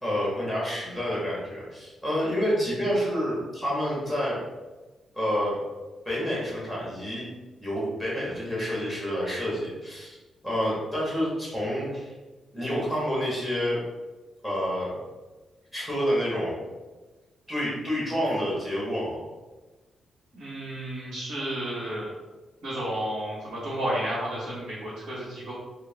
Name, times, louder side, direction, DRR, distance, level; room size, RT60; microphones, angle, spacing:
voice 1, 0.0-4.4 5.1-5.6 6.0-7.3 7.6-10.2 10.4-12.1 12.5-13.8 14.4-14.9 15.7-16.6 17.5-19.2, equal, 5° right, -6 dB, 1.3 m, -28 dB
voice 2, 20.3-22.1 22.6-25.5, right 1 dB, 55° right, -12 dB, 1.2 m, -32 dB
4.5 x 2.2 x 3.4 m, 1.2 s
wide cardioid pair, 180°, 0 cm